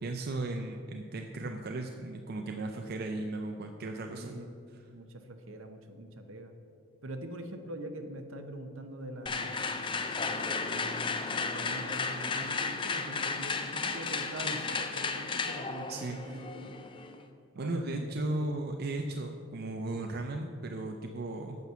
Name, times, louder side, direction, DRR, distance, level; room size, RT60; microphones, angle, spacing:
voice 1, 0.0-4.4 15.9-16.4 17.6-21.6, right 2 dB, 50° right, 4 dB, 0.5 m, -36 dB
voice 2, 4.1-4.5 4.9-6.5 7.0-16.8 17.6-18.6, right 1 dB, 70° right, 7 dB, 0.9 m, -43 dB
sound 1, 9.3-17.2, left 4 dB, 25° left, 0.4 m, -34 dB
8.1 x 6.0 x 6.8 m, 2.4 s
head